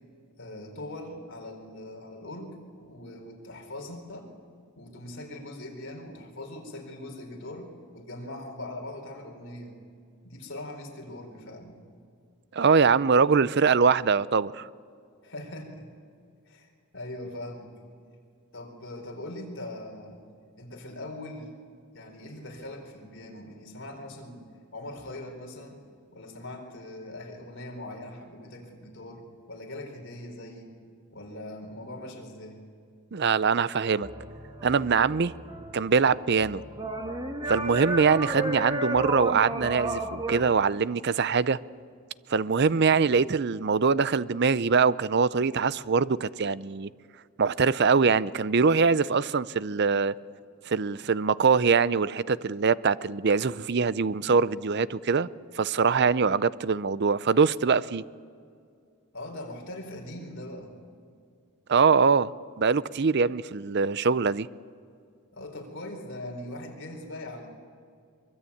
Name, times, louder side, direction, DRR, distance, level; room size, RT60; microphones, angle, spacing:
voice 1, 0.4-4.3 4.7-9.8 10.2-11.8 15.2-15.9 16.5-17.7 18.5-20.2 20.6-21.5 21.9-24.4 24.7-25.8 26.1-30.7 31.1-32.6 59.1-60.7 65.3-67.5, left 1 dB, 55° left, 4.3 m, -41 dB
voice 2, 12.5-14.7 33.1-34.1 34.6-35.3 35.7-36.6 37.5-41.6 42.3-46.9 47.4-50.1 50.7-55.3 55.6-58.0 61.7-62.3 62.6-64.5, right 5 dB, 50° right, 0.5 m, -23 dB
sound 1, 33.8-40.4, right 2 dB, 20° right, 1.7 m, -33 dB
23.5 x 22.5 x 8.6 m
head